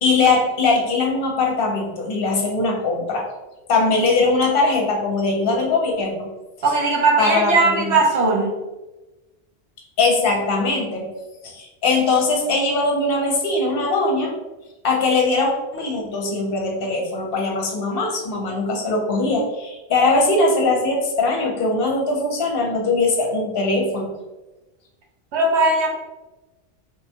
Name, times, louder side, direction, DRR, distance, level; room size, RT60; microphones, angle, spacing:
voice 1, 0.0-3.2 3.7-6.3 7.2-8.0 10.0-11.1 11.4-14.3 14.8-24.2, left 3 dB, 60° left, 0 dB, 0.8 m, -21 dB
voice 2, 6.6-8.6 25.3-25.9, right 3 dB, 75° right, 0 dB, 1.0 m, -18 dB
3.5 x 2.2 x 2.7 m, 1.1 s
omnidirectional pair, 1.2 m